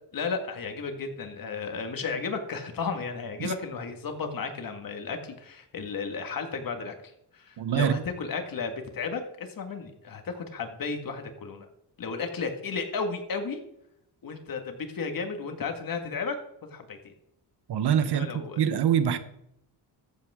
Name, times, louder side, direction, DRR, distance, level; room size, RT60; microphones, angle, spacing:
voice 1, 0.1-11.7 12.0-13.6 14.2-16.4 16.7-17.1 18.1-18.6, left 5 dB, 55° left, 5 dB, 2.0 m, -34 dB
voice 2, 7.6-8.0 17.7-19.2, right 9 dB, 70° right, 11 dB, 1.2 m, -25 dB
14.0 x 8.1 x 3.7 m, 0.79 s
cardioid pair, 95°, 42 cm